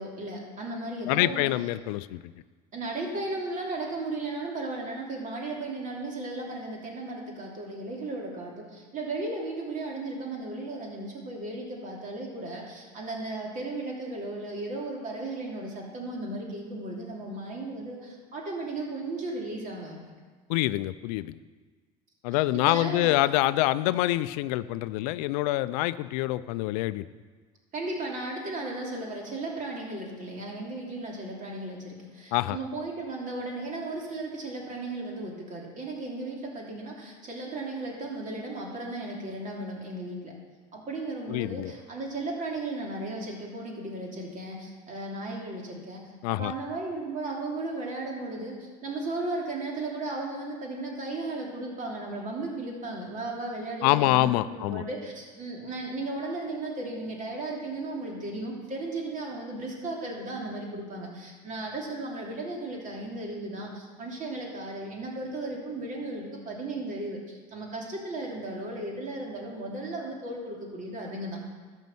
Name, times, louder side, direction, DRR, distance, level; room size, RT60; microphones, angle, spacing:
voice 1, 0.0-1.5 2.7-20.1 22.7-23.1 27.7-40.3 40.7-46.0 46.3-71.4, right 2 dB, 40° right, -1 dB, 3.1 m, -35 dB
voice 2, 1.0-2.2 20.5-21.4 22.2-27.1 32.3-32.6 41.3-41.7 46.2-46.5 53.8-54.9, left 17 dB, 80° left, 16 dB, 0.4 m, -26 dB
12.0 x 5.4 x 7.8 m, 1.4 s
supercardioid pair, 90°, 20 cm